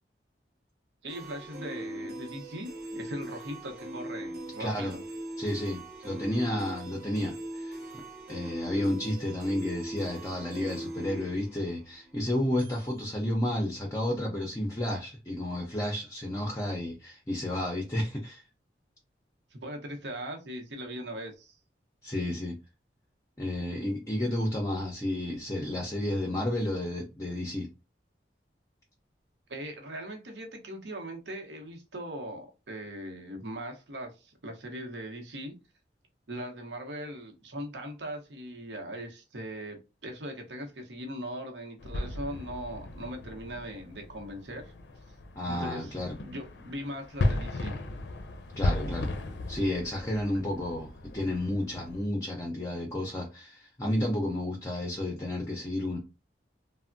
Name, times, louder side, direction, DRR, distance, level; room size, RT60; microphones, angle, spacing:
voice 1, 1.0-5.0 19.5-21.6 29.5-35.5 36.3-44.7 45.5-45.9 46.2-47.8, equal, 80° right, 0.8 m, -40 dB
sound 1, 1.1-12.8, right 1 dB, 55° right, 0.9 m, -41 dB
voice 2, 4.6-5.0 5.4-8.0 8.3-18.4 22.0-22.6 23.4-27.7 45.4-46.2 48.6-49.1 49.5-56.0, left 1 dB, 15° left, 0.5 m, -31 dB
sound 2, 41.8-52.1, left 2 dB, 80° left, 0.5 m, -36 dB
3.3 x 2.1 x 2.5 m
head